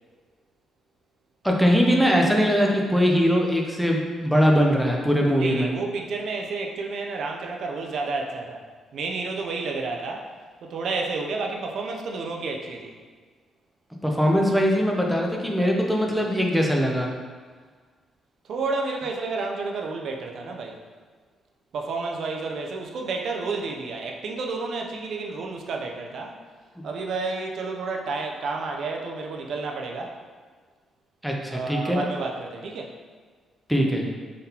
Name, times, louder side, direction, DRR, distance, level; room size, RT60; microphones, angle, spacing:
voice 1, 1.4-5.7 14.0-17.1 31.2-32.0 33.7-34.1, equal, ahead, 0 dB, 0.4 m, -21 dB
voice 2, 5.4-8.6 8.9-10.3 10.6-12.9 18.5-20.8 21.7-26.4 26.8-30.2 31.5-32.9, right 3 dB, 55° right, 1 dB, 0.4 m, -30 dB
3.8 x 3.6 x 2.8 m, 1.5 s
cardioid pair, 165°, 0 cm